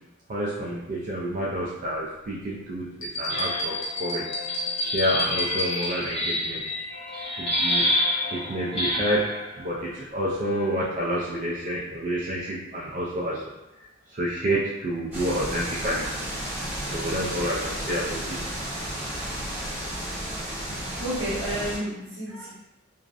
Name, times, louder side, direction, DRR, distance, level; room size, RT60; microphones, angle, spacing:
voice 1, 0.3-3.7 4.0-4.2 4.9-6.6 7.4-7.8 8.3-13.4 14.1-16.1 16.9-18.4, equal, 40° right, -6 dB, 0.3 m, -29 dB
sound 1, 3.0-6.4, left 2 dB, 70° left, 0.6 m, -31 dB
sound 2, 3.3-9.5 10.4-11.0, left 1 dB, 25° left, 0.5 m, -29 dB
sound 3, 15.1-21.8, right 1 dB, 10° right, 0.8 m, -32 dB
voice 2, 21.0-22.5, right 1 dB, 75° right, -8 dB, 1.0 m, -31 dB
2.5 x 2.0 x 2.4 m, 0.95 s
head